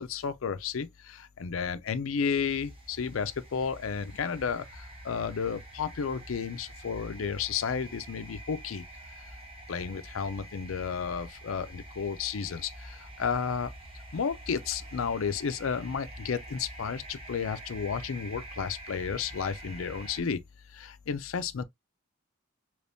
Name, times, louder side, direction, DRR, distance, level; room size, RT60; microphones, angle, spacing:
voice 1, 0.0-8.8 9.2-9.3 9.7-13.7 14.1-20.4 20.7-21.6, left 6 dB, 70° left, 0.5 m, -32 dB
sound 1, 2.2-20.2, right 1 dB, 25° right, 1.0 m, -46 dB
3.4 x 3.0 x 2.6 m
head